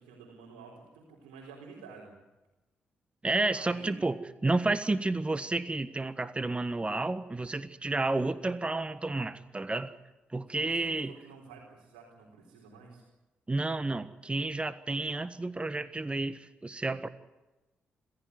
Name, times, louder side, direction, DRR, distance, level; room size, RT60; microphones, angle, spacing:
voice 1, 0.0-2.2 3.5-4.0 10.5-13.0, right 5 dB, 85° right, -3 dB, 4.1 m, -50 dB
voice 2, 3.2-4.2 4.4-9.9 10.3-11.2 13.5-17.1, right 2 dB, 25° right, 12 dB, 1.5 m, -31 dB
27.0 x 15.5 x 9.6 m, 1.1 s
hypercardioid pair, 40°, 5 cm